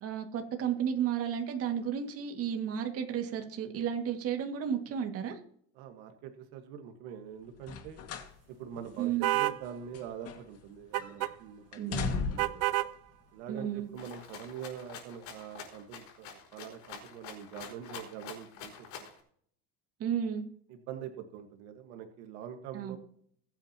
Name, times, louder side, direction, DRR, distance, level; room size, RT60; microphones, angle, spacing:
voice 1, 0.0-5.4 9.0-9.3 11.8-12.3 13.5-13.9 20.0-20.4 22.7-23.0, right 8 dB, 45° right, 4 dB, 2.0 m, -33 dB
voice 2, 5.7-8.0 8.5-12.6 13.3-19.1 20.7-23.0, right 9 dB, 75° right, 6 dB, 1.6 m, -44 dB
sound 1, 7.6-8.4 8.8-8.9 9.6-10.7 10.9-11.3 11.7-12.7 13.5-13.6, left 6 dB, 45° left, 2.0 m, -37 dB
sound 2, 9.2-9.6 10.9-11.3 12.4-12.9, right 17 dB, 60° right, 0.6 m, -29 dB
Rattle (instrument), 14.0-19.2, left 7 dB, 75° left, 5.3 m, -47 dB
21.0 x 9.0 x 2.9 m, 0.63 s
cardioid pair, 135°, 33 cm